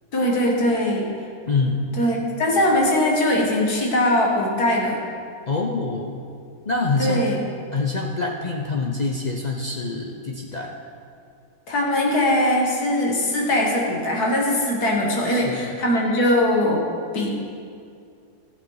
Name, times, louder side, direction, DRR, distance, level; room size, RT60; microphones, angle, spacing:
voice 1, 0.1-1.1 2.0-5.0 7.0-7.4 11.7-16.9 17.1-17.3, left 1 dB, 80° left, -1 dB, 2.1 m, -21 dB
voice 2, 1.5-1.9 5.5-6.2 6.7-7.3 7.7-10.8 15.3-15.8, left 3 dB, 50° left, 0 dB, 0.5 m, -25 dB
14.5 x 7.1 x 4.8 m, 2.4 s
omnidirectional pair, 1.6 m